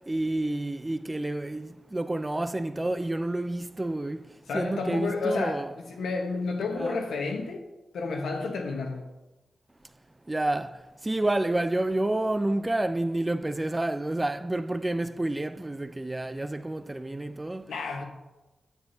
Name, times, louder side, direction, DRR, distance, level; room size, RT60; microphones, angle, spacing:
voice 1, 0.1-4.2 4.5-5.7 6.8-7.0 10.3-10.8 11.0-17.6, right 1 dB, 20° right, 0.5 m, -29 dB
voice 2, 4.5-7.6 7.9-9.1 17.7-18.0, left 3 dB, 90° left, 1.2 m, -31 dB
9.2 x 7.8 x 2.8 m
cardioid pair, 55°, 0 cm